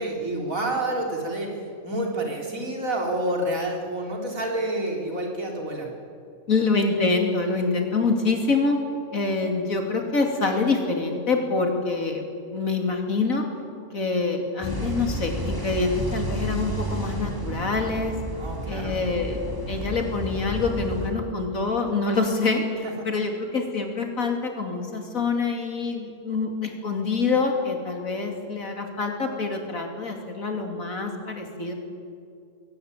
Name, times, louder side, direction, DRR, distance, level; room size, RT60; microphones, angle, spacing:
voice 1, 0.0-5.9 18.4-19.0 22.8-23.1, right 1 dB, 75° right, 0 dB, 4.0 m, -28 dB
voice 2, 6.5-8.8 9.1-13.4 13.9-18.1 18.6-31.7, left 3 dB, 75° left, 3 dB, 3.3 m, -26 dB
sound 1, 14.6-21.1, right 1 dB, 15° right, 2.8 m, -31 dB
21.5 x 18.0 x 9.1 m, 2.4 s
omnidirectional pair, 1.4 m